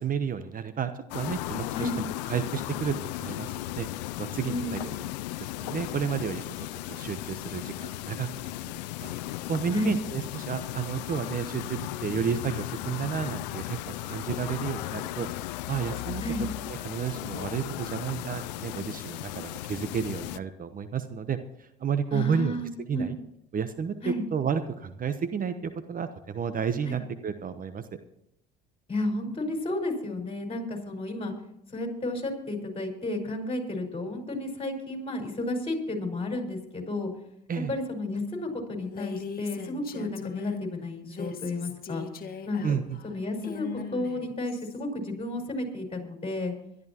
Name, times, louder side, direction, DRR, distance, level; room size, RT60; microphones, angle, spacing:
voice 1, 0.0-3.9 4.2-5.0 5.6-8.5 9.0-9.1 9.5-15.3 15.7-16.2 16.7-22.6 22.9-23.2 23.5-27.8 37.5-37.7 42.6-43.0, right 7 dB, 40° right, 10 dB, 1.0 m, -31 dB
sound 1, 1.1-20.4, left 16 dB, 90° left, 0.4 m, -36 dB
voice 2, 4.4-4.8 9.7-10.0 16.2-16.5 22.1-23.1 24.0-24.2 26.9-27.0 28.9-31.3 31.7-37.1 37.7-42.0 42.5-42.6 43.0-46.5, left 2 dB, 25° left, 3 dB, 5.1 m, -32 dB
Female speech woman speaking, 38.8-40.7 41.0-44.8, left 6 dB, 45° left, 1.8 m, -40 dB
22.5 x 12.0 x 3.0 m, 0.77 s
hypercardioid pair, 70°, 21 cm